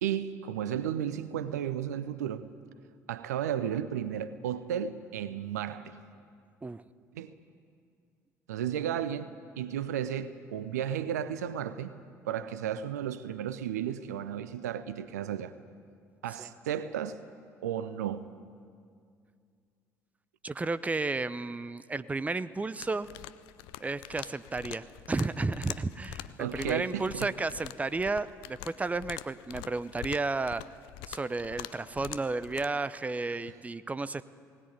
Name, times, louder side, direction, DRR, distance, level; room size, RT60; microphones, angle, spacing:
voice 1, 0.0-2.5 3.1-5.9 7.1-7.3 8.5-11.9 12.3-15.5 16.2-17.2 17.6-18.3 26.4-27.3 33.4-33.5, right 9 dB, 75° right, 14 dB, 0.7 m, -33 dB
voice 2, 20.4-23.1 23.8-30.6 31.1-34.2, right 3 dB, 15° right, 15 dB, 0.7 m, -32 dB
sound 1, 22.8-32.7, left 15 dB, 60° left, 0.6 m, -45 dB
19.0 x 18.5 x 9.5 m, 2.2 s
figure-of-eight pair, 50°, 9 cm